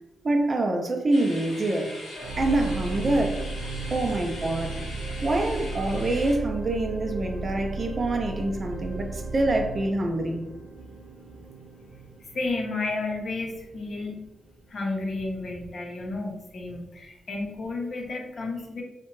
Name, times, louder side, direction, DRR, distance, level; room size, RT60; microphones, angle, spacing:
voice 1, 0.2-1.9 2.4-3.4 3.9-4.8 5.2-10.5, right 2 dB, 35° right, 4 dB, 0.4 m, -26 dB
sound 1, 1.1-6.3, left 1 dB, 85° left, 0.8 m, -41 dB
sound 2, 2.2-14.6 15.2-15.3, right 3 dB, 55° right, 0.8 m, -36 dB
voice 2, 12.3-14.2 14.7-18.8, left 3 dB, 55° left, 0 dB, 0.6 m, -32 dB
2.7 x 2.1 x 3.0 m, 0.97 s
cardioid pair, 110°, 0 cm